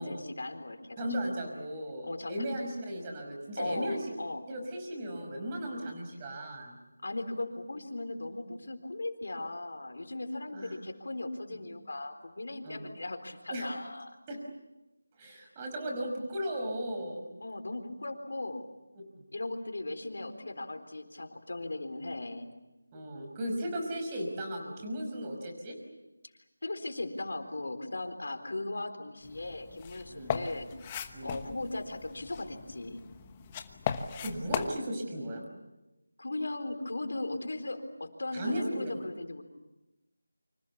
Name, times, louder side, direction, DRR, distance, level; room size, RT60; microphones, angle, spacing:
voice 1, 0.0-1.1 2.0-2.4 3.6-4.4 7.0-14.2 17.4-18.7 19.3-22.5 26.6-30.7 31.2-33.1 36.2-39.4, left 2 dB, 65° left, 7 dB, 4.0 m, -38 dB
voice 2, 1.0-4.0 4.5-6.8 10.5-10.7 12.6-12.8 13.5-13.7 14.3-14.4 15.2-17.3 22.9-25.8 30.1-30.3 31.1-31.4 34.2-35.4 38.3-39.0, equal, 20° right, 2 dB, 5.4 m, -36 dB
sound 1, 29.2-34.8, left 8 dB, 20° left, 1.1 m, -38 dB
28.5 x 26.0 x 7.2 m, 1.0 s
figure-of-eight pair, 165°, 0 cm